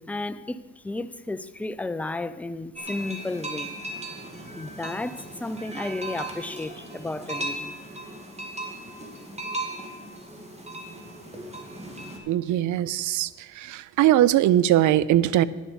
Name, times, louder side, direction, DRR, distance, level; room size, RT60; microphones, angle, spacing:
voice 1, 0.1-0.6 0.8-3.7 4.5-7.7, left 2 dB, 5° left, 13 dB, 0.4 m, -33 dB
sound 1, 2.8-12.2, right 2 dB, 20° right, 2.1 m, -37 dB
voice 2, 12.3-13.3 13.6-15.4, right 13 dB, 75° right, 19 dB, 0.5 m, -21 dB
10.5 x 7.3 x 6.9 m, 1.3 s
cardioid pair, 90°, 30 cm